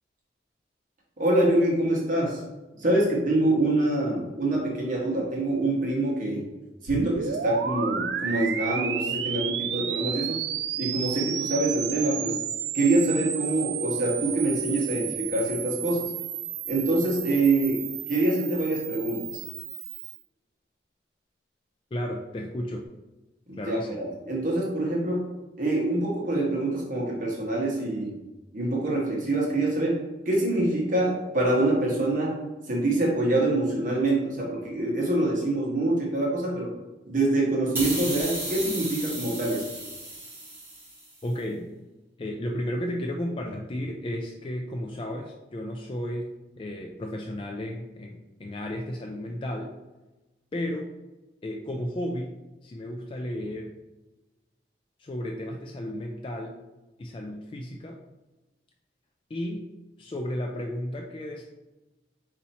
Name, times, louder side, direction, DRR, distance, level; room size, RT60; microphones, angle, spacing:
voice 1, 1.2-2.4 2.8-6.4 6.8-10.4 10.8-12.4 12.7-16.1 16.7-17.8 18.1-19.4 23.5-25.3 25.6-28.1 28.5-32.4 32.7-36.7 37.0-39.6, right 2 dB, 45° right, -3 dB, 1.1 m, -25 dB
sound 1, 6.9-20.2, right 8 dB, 75° right, 0.3 m, -32 dB
voice 2, 21.9-22.8 23.6-24.0 41.2-41.7 42.2-49.7 50.5-50.9 51.4-52.3 52.6-53.7 55.0-56.5 57.0-58.0 59.3-59.7 60.0-61.5, left 1 dB, 30° left, 1 dB, 0.3 m, -33 dB
sound 2, 37.7-41.1, right 1 dB, 15° right, 1.0 m, -34 dB
4.2 x 2.8 x 4.1 m, 1.1 s
head